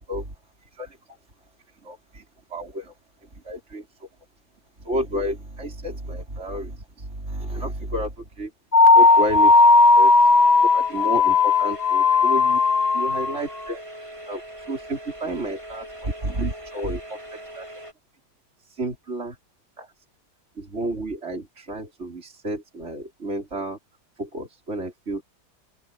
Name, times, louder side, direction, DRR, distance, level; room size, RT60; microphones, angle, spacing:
voice 1, 1.8-2.2 2.5-2.9 3.2-4.1 4.8-8.5 8.9-9.5 9.9-10.3 10.6-12.6 12.9-13.8 14.3-14.4 14.7-17.7 18.6-19.4 19.8-19.9 20.6-23.8 24.2-25.2, right 1 dB, 40° right, 5.0 m, -31 dB
sound 1, 8.7-13.4, left 3 dB, 30° left, 0.9 m, -16 dB
sound 2, 8.9-17.9, right 1 dB, 15° right, 4.2 m, -40 dB
omnidirectional pair, 1.8 m